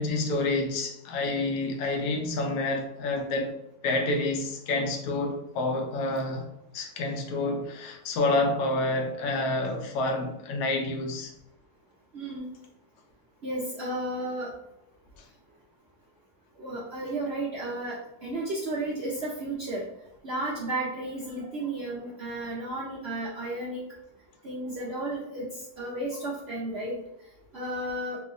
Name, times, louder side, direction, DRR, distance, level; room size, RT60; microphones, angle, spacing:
voice 1, 0.0-3.5 3.8-6.5 6.7-11.3, left 2 dB, 70° left, 3 dB, 1.0 m, -28 dB
voice 2, 12.1-12.4 13.4-14.5 16.6-19.8 20.2-23.8 24.4-25.5 25.8-27.0 27.5-28.2, right 1 dB, 90° right, -6 dB, 0.5 m, -33 dB
3.1 x 3.0 x 2.4 m, 0.82 s
omnidirectional pair, 2.0 m